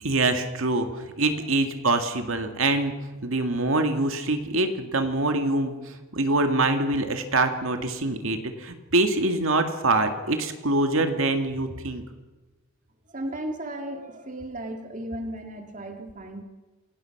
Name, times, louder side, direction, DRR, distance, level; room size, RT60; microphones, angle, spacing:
voice 1, 0.0-0.9 1.2-2.9 3.2-5.7 6.1-12.0, right 2 dB, 70° right, 6 dB, 2.1 m, -24 dB
voice 2, 13.1-16.4, right 1 dB, 35° right, 5 dB, 2.1 m, -35 dB
27.5 x 18.0 x 5.9 m, 1.2 s
head